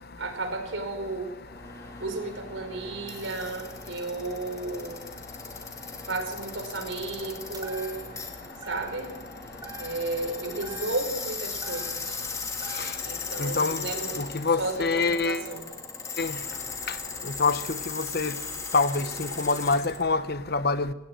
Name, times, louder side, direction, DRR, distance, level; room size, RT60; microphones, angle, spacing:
voice 1, 0.2-1.3 2.0-5.1 6.1-8.1 8.6-9.1 9.8-12.2 13.0-14.2 14.6-15.7, right 2 dB, 80° right, 6 dB, 4.7 m, -33 dB
sound 1, 1.5-20.0, left 4 dB, 15° left, 2.8 m, -38 dB
sound 2, 7.5-8.3 8.6-9.3 9.6-10.3 10.6-12.3 12.6-13.2, right 4 dB, 20° right, 4.6 m, -45 dB
voice 2, 13.4-13.8 14.2-15.4 16.2-16.3 17.4-17.6 17.9-18.3 18.7-20.9, left 4 dB, 50° left, 13 dB, 1.1 m, -25 dB
21.0 x 18.5 x 7.7 m, 1.0 s
head